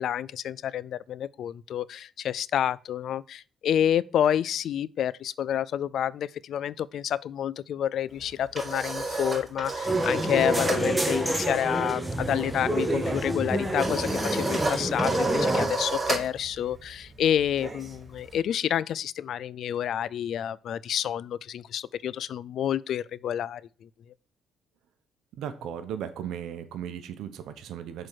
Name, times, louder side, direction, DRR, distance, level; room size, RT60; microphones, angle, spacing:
voice 1, 0.0-23.9, left 10 dB, 70° left, 0.3 m, -29 dB
sound 1, 8.2-10.9 11.1-11.4 11.7-18.4, right 3 dB, 25° right, 3.9 m, -32 dB
sound 2, 9.9-15.7, right 1 dB, 5° right, 1.5 m, -27 dB
voice 2, 25.4-28.1, right 9 dB, 80° right, 1.0 m, -36 dB
6.3 x 4.4 x 6.3 m
cardioid pair, 90°, 0 cm